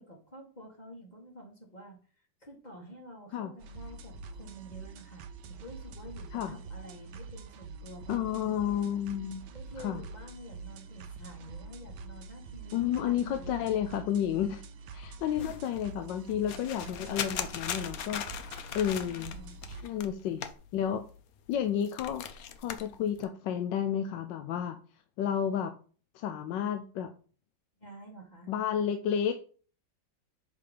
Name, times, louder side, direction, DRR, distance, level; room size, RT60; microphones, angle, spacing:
voice 1, 0.0-8.6 9.5-13.8 15.2-15.6 18.9-19.6 27.8-28.5, right 1 dB, 25° left, 0 dB, 1.5 m, -49 dB
sound 1, 3.6-19.8, right 4 dB, 75° right, 1.2 m, -46 dB
voice 2, 8.1-9.4 9.8-10.0 12.7-14.6 14.9-18.2 18.7-19.3 19.8-20.4 20.7-21.0 21.5-22.2 22.6-24.8 25.2-25.7 26.1-27.1 28.5-29.4, left 9 dB, 80° left, 7 dB, 1.3 m, -31 dB
sound 2, 15.2-21.2 21.5-23.2, left 8 dB, 65° left, 1.0 m, -40 dB
6.7 x 3.5 x 5.1 m, 0.40 s
omnidirectional pair, 2.0 m